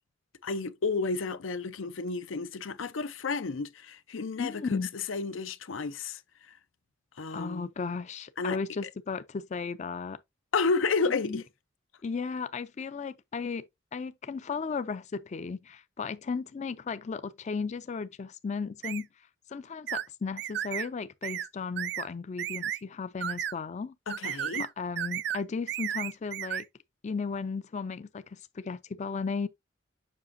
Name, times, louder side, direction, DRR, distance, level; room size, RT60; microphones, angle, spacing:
voice 1, 0.4-4.8 5.1-6.2 7.2-7.7 8.4-8.6 10.5-11.4 24.1-24.7, left 4 dB, 85° left, 0.6 m, -31 dB
voice 2, 4.4-4.9 7.3-10.2 11.2-11.4 12.0-13.6 13.9-19.1 19.5-23.9 24.6-26.7 27.0-29.5, left 5 dB, 35° left, 0.4 m, -35 dB
sound 1, 18.8-19.0 19.9-20.1 20.4-20.9 21.2-21.5 21.8-22.1 22.4-22.8 23.2-23.5 24.1-24.7 25.0-25.4 25.7-26.6, right 10 dB, 60° right, 0.4 m, -33 dB
7.3 x 5.6 x 2.6 m
head